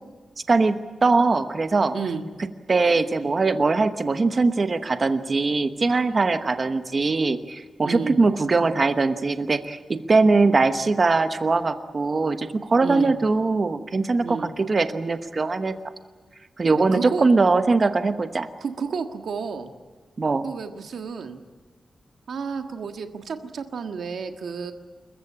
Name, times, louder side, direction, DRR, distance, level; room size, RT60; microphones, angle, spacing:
voice 1, 0.5-2.0 2.7-15.7 16.6-18.5 20.2-20.5, right 3 dB, 30° right, 9 dB, 1.1 m, -21 dB
voice 2, 1.9-2.2 7.8-8.2 12.8-13.1 14.2-14.5 16.9-17.3 18.6-19.7 20.4-21.4 22.3-24.7, right 5 dB, 70° right, 6 dB, 1.6 m, -31 dB
28.0 x 15.0 x 8.8 m, 1.4 s
wide cardioid pair, 175°, 0 cm